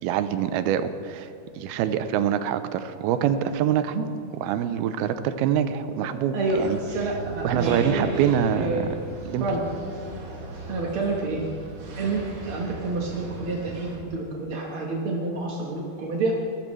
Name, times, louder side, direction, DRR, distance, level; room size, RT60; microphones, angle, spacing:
voice 1, 0.0-1.3 1.6-4.0 4.4-6.8 7.4-8.9 9.3-9.5, right 9 dB, 85° right, 11 dB, 2.5 m, -25 dB
voice 2, 6.3-8.1 8.5-8.8 9.4-9.6 10.7-11.4 12.0-16.3, right 3 dB, 70° right, -1 dB, 1.3 m, -28 dB
sound 1, 6.5-14.0, right 2 dB, 50° right, 2.8 m, -37 dB
19.5 x 14.0 x 3.2 m, 2.6 s
omnidirectional pair, 4.5 m